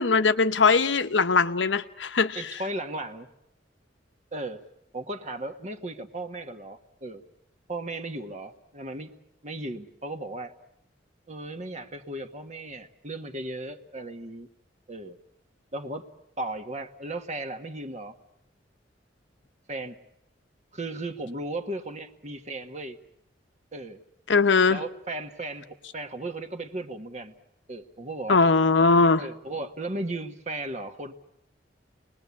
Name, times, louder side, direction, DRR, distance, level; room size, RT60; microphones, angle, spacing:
voice 1, 0.0-2.5 24.3-24.8 28.3-29.2, left 4 dB, 90° left, 1.0 m, -21 dB
voice 2, 2.3-3.3 4.3-4.6 4.9-7.2 7.7-9.1 9.4-10.5 11.3-14.5 14.9-15.2 15.7-16.1 16.4-18.2 19.7-20.0 20.7-23.0 23.7-24.0 24.7-27.3 27.7-28.4 29.2-31.1, right 2 dB, 40° right, 1.4 m, -36 dB
29.5 x 20.5 x 8.4 m
head